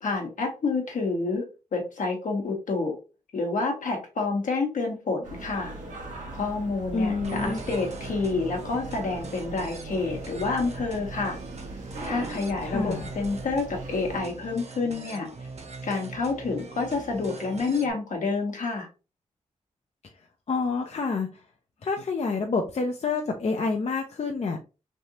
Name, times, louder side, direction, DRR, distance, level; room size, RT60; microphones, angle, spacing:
voice 1, 0.0-1.4 1.7-3.0 3.3-5.7 6.3-11.4 12.0-15.3 15.8-18.9, left 3 dB, 75° left, 1 dB, 1.1 m, -28 dB
sound 1, 5.2-14.2, right 2 dB, 75° right, 1.1 m, -40 dB
voice 2, 6.9-7.6 12.6-13.1 20.5-21.4 21.8-24.6, left 4 dB, 55° left, 3 dB, 0.6 m, -28 dB
sound 2, 7.2-17.9, right 3 dB, 55° right, 0.8 m, -41 dB
3.3 x 2.7 x 2.8 m, 0.31 s
cardioid pair, 55°, 13 cm